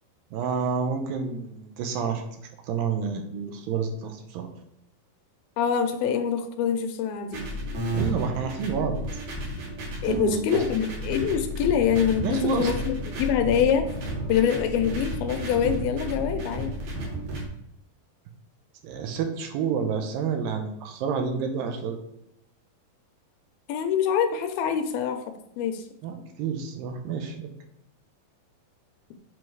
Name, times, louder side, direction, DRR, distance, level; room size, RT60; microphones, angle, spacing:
voice 1, 0.3-2.3 2.6-4.5 7.9-9.0 10.1-10.4 12.2-12.7 18.8-22.0 26.0-27.5, right 6 dB, 80° right, 5 dB, 2.3 m, -29 dB
voice 2, 5.6-7.5 10.0-13.9 14.3-16.7 23.7-25.8, left 8 dB, 80° left, 7 dB, 2.4 m, -25 dB
sound 1, 7.3-17.4, right 1 dB, 55° right, 2.7 m, -32 dB
7.7 x 3.9 x 4.6 m, 0.82 s
omnidirectional pair, 4.4 m